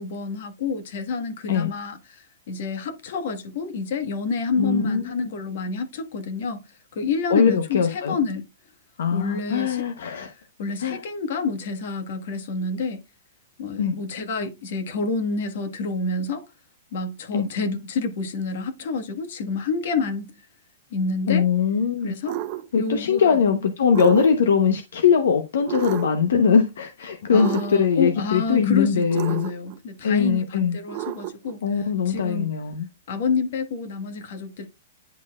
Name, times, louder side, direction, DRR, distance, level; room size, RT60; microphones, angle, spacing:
voice 1, 0.0-6.6 6.9-8.5 9.1-9.8 10.6-13.0 13.6-16.4 16.9-20.3 20.9-21.5 22.0-22.4 22.8-23.4 27.3-32.5 33.1-34.7, left 4 dB, 60° left, 1.6 m, -28 dB
voice 2, 4.6-5.1 7.3-8.2 9.0-10.3 10.8-11.0 13.8-13.9 17.3-17.5 21.3-22.1 22.7-29.5 30.0-30.8 31.6-32.9, left 6 dB, 80° left, 0.9 m, -21 dB
sound 1, 22.2-22.7 23.9-24.6 25.6-26.3 27.3-28.0 29.1-29.8 30.9-31.5, right 14 dB, 40° right, 0.8 m, -31 dB
10.5 x 4.3 x 2.4 m
hypercardioid pair, 150°, 0 cm